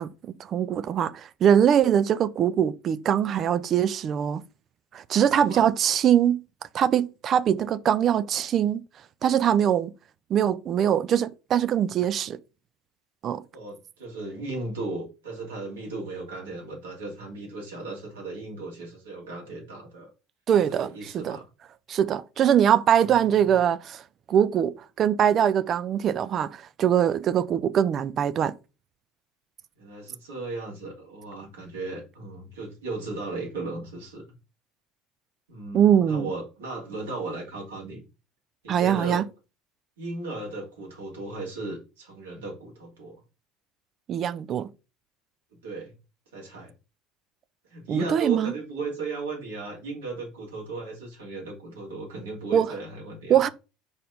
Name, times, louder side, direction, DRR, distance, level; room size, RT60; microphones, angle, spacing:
voice 1, 0.0-4.4 4.9-6.4 6.7-8.8 9.2-9.9 10.3-12.4 13.2-13.4 20.5-21.4 21.9-24.0 24.3-28.5 35.7-36.3 38.7-39.2 44.1-44.7 47.9-48.5 52.5-52.7 53.3-53.5, right 9 dB, 40° right, 0.5 m, -22 dB
voice 2, 5.3-5.6 13.5-20.1 20.7-21.4 23.2-23.6 29.8-34.3 35.5-38.0 38.6-39.3 40.0-43.2 45.5-45.9 46.3-46.7 47.7-53.4, right 3 dB, 70° right, 3.1 m, -36 dB
5.3 x 4.2 x 5.2 m
figure-of-eight pair, 65°, 0 cm